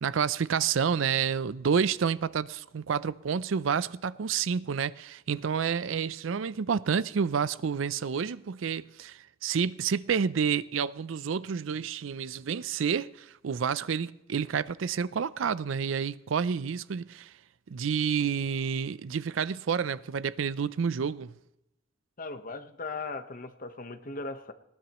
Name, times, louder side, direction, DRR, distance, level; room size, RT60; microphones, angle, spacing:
voice 1, 0.0-17.3 17.7-21.3, right 6 dB, 80° right, 0.4 m, -29 dB
voice 2, 22.2-24.5, left 3 dB, 45° left, 1.1 m, -38 dB
19.5 x 18.5 x 3.0 m
head